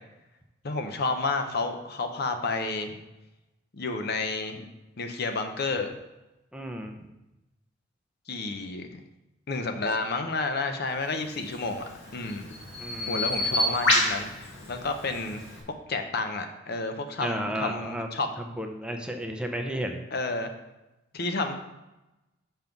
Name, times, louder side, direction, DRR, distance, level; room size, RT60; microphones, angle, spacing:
voice 1, 0.6-3.0 3.7-4.7 5.0-5.9 8.3-9.0 9.5-11.8 12.1-12.5 13.1-15.4 15.9-18.3 20.1-20.5 21.1-21.5, left 3 dB, 60° left, 6 dB, 0.8 m, -30 dB
voice 2, 6.5-6.9 12.8-13.6 17.2-18.1 18.6-20.0, right 1 dB, 5° right, 3 dB, 0.6 m, -33 dB
Bird vocalization bird call bird song, 11.4-15.6, left 1 dB, 75° left, 2.0 m, -29 dB
5.6 x 5.3 x 5.9 m, 0.98 s
head